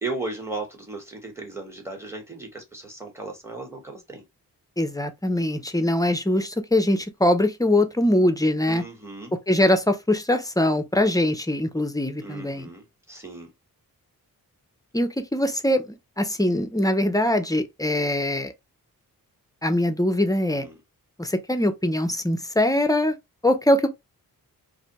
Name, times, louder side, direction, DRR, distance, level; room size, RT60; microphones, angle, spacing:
voice 1, 0.0-4.2 8.7-9.3 12.2-13.5 20.5-20.7, right 3 dB, 5° right, 1.0 m, -36 dB
voice 2, 4.8-8.8 9.5-12.7 14.9-15.8 16.2-18.5 19.6-20.6 21.2-23.2 23.4-23.9, left 1 dB, 10° left, 0.4 m, -22 dB
2.6 x 2.1 x 2.8 m
wide cardioid pair, 95°, 36 cm